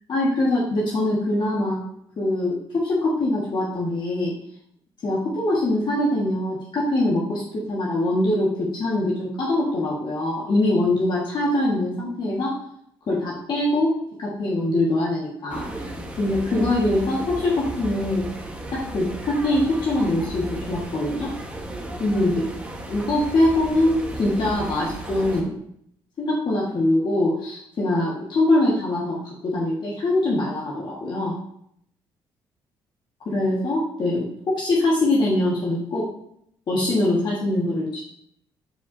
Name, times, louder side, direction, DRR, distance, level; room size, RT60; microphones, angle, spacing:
voice 1, 0.1-1.8 2.2-4.3 5.0-7.4 7.7-12.5 13.1-15.7 16.2-18.3 18.7-21.3 22.0-22.5 22.9-25.6 26.2-31.3 33.3-36.0 36.7-38.0, left 1 dB, 50° left, -5 dB, 1.8 m, -23 dB
sound 1, 15.5-25.4, right 1 dB, 15° right, 1.5 m, -35 dB
7.9 x 4.7 x 2.8 m, 0.71 s
supercardioid pair, 75°, 10 cm